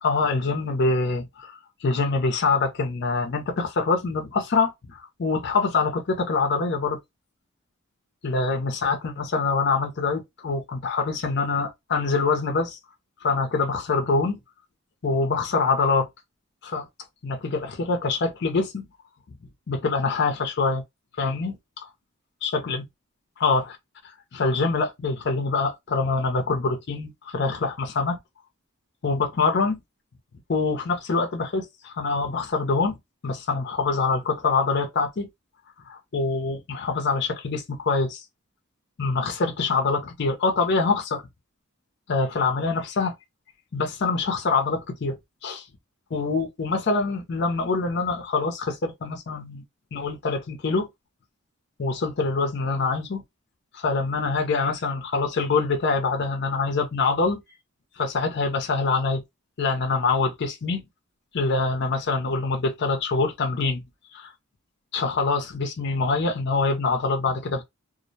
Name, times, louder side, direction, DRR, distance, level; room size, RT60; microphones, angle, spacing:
voice 1, 0.0-7.0 8.2-12.8 13.2-14.4 15.0-16.1 16.6-16.9 17.2-18.8 19.7-20.8 21.2-21.6 22.4-22.8 23.4-23.8 24.0-28.2 29.0-29.8 30.5-33.0 33.2-35.3 35.8-38.2 39.0-41.2 42.1-43.1 43.7-45.1 45.4-45.6 46.1-49.6 49.9-50.9 51.8-53.2 53.7-57.4 58.0-59.2 59.6-60.8 61.3-63.8 64.1-64.3 64.9-67.6, left 4 dB, 50° left, 0.5 m, -25 dB
2.4 x 2.0 x 2.6 m
head